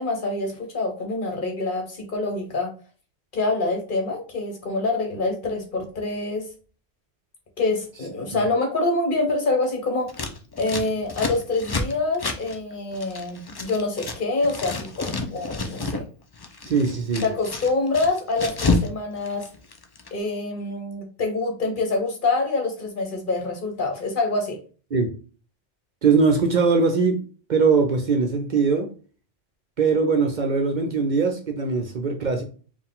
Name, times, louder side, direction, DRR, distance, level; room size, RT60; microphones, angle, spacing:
voice 1, 0.0-2.7 3.3-6.5 7.6-10.1 10.6-16.1 17.2-19.5 20.1-24.6, left 3 dB, 50° left, 1.2 m, -26 dB
Scissors, 10.1-14.2 14.4-16.0 16.3-18.9 19.2-20.1, left 3 dB, 35° left, 0.4 m, -29 dB
voice 2, 16.7-17.2 24.9-25.1 26.0-27.2 27.5-28.9 29.8-32.4, right 4 dB, 50° right, 0.7 m, -21 dB
4.5 x 2.5 x 3.6 m
omnidirectional pair, 1.1 m